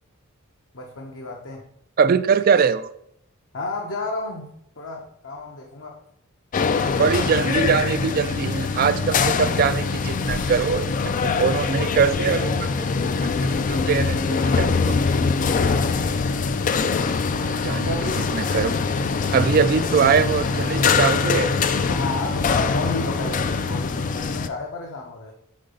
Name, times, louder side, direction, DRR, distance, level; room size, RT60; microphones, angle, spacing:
voice 1, 0.7-1.7 3.5-6.0 11.2-12.1 12.3-13.0 17.8-18.3 21.9-25.3, left 3 dB, 60° left, 0 dB, 0.8 m, -33 dB
voice 2, 2.0-2.9 7.0-12.5 13.2-15.0 17.4-18.0 18.3-18.7 19.3-21.5, right 6 dB, 40° right, 13 dB, 0.3 m, -22 dB
sound 1, 6.5-24.5, left 4 dB, 35° left, 0.3 m, -23 dB
5.2 x 4.8 x 5.2 m, 0.73 s
head